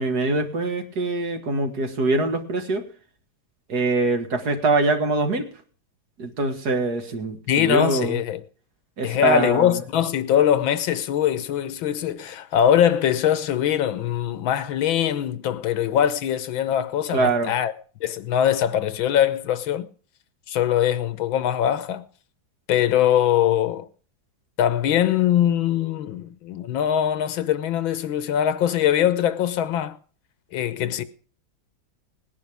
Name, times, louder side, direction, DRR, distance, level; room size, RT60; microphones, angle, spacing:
voice 1, 0.0-2.9 3.7-5.5 6.2-8.2 9.0-9.8 17.1-17.5, right 3 dB, 55° right, 2.3 m, -23 dB
voice 2, 7.5-8.4 9.0-17.7 18.0-19.9 20.5-22.0 22.7-23.9 24.6-30.0 30.5-31.0, left 10 dB, 85° left, 1.7 m, -22 dB
19.5 x 10.5 x 3.5 m
omnidirectional pair, 2.1 m